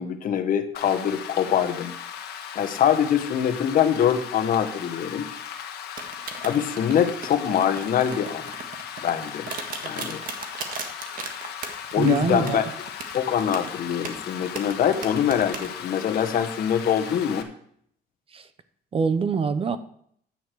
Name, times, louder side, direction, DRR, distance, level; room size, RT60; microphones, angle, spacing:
voice 1, 0.0-1.9 2.5-5.3 6.4-8.5 9.0-9.5 9.8-10.2 11.9-12.7 13.1-17.5, left 9 dB, 55° left, 8 dB, 1.3 m, -24 dB
Rain, 0.7-17.4, left 8 dB, 70° left, 1.4 m, -37 dB
sound 1, 6.0-15.7, right 5 dB, 55° right, 1.6 m, -36 dB
voice 2, 12.0-12.6 18.3-18.5 18.9-19.8, right 5 dB, 35° right, 13 dB, 0.8 m, -24 dB
11.0 x 8.8 x 4.7 m, 0.65 s
cardioid pair, 110°, 17 cm